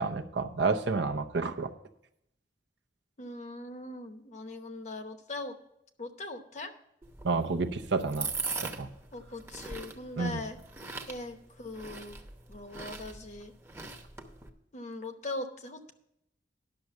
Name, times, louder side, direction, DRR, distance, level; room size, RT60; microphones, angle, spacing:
voice 1, 0.0-1.7 7.2-8.3 8.6-8.9 10.2-10.4, right 4 dB, 65° right, 7 dB, 0.7 m, -30 dB
voice 2, 3.2-5.6 6.0-6.7 9.1-10.6 11.1-12.2 12.5-13.5 14.7-15.9, left 2 dB, 40° left, 7 dB, 0.9 m, -40 dB
sound 1, 7.0-14.5, right 4 dB, 15° right, 0.9 m, -41 dB
10.5 x 6.4 x 5.9 m, 0.79 s
head